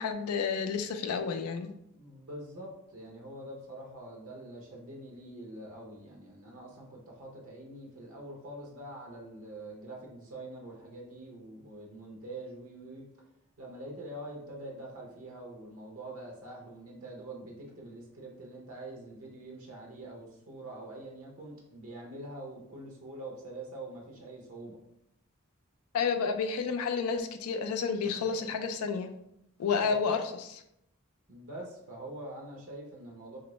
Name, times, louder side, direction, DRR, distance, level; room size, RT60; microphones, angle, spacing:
voice 1, 0.0-1.7 25.9-29.1 29.6-30.6, left 5 dB, 75° left, 7 dB, 0.4 m, -30 dB
voice 2, 1.9-13.0 13.6-24.8 29.8-30.0 31.3-33.4, right 1 dB, 70° right, -1 dB, 0.8 m, -45 dB
3.0 x 2.5 x 3.0 m, 0.79 s
head